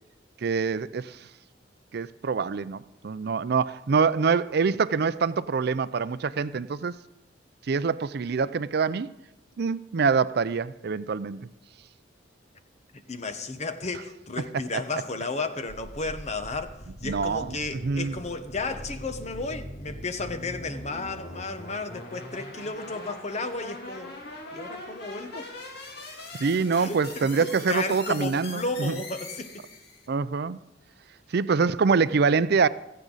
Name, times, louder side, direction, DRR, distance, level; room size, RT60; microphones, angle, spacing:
voice 1, 0.4-1.3 1.9-6.9 7.7-9.1 9.6-11.5 17.0-18.2 26.3-29.0 30.1-30.6 31.3-32.7, right 5 dB, 60° right, 0.4 m, -25 dB
voice 2, 13.1-24.1 24.5-25.5 26.8-29.6, left 3 dB, 40° left, 1.1 m, -33 dB
sound 1, 15.7-30.1, left 1 dB, 60° left, 2.7 m, -42 dB
16.0 x 15.0 x 4.0 m
head